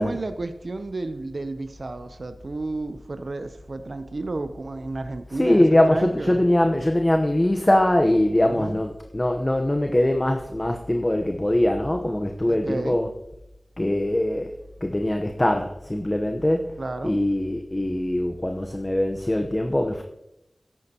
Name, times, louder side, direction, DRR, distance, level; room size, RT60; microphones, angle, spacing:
voice 1, 0.0-6.4 8.4-8.8 12.4-13.0 16.8-17.2, right 2 dB, 65° right, 0.6 m, -32 dB
voice 2, 5.3-13.1 13.8-14.5 14.8-16.8 17.0-20.0, left 1 dB, 25° left, 0.9 m, -22 dB
13.5 x 10.5 x 2.9 m
wide cardioid pair, 45°, 0 cm